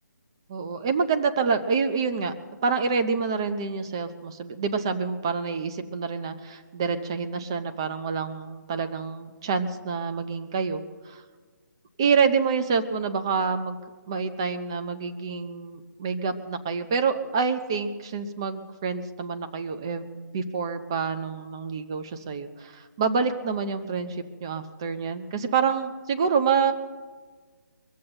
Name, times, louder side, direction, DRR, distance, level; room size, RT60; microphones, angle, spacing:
voice 1, 0.5-2.3 2.6-11.2 12.0-13.8 14.1-26.7, right 5 dB, 15° right, 9 dB, 0.4 m, -27 dB
22.5 x 7.7 x 7.8 m, 1.4 s
hypercardioid pair, 170°, 10 cm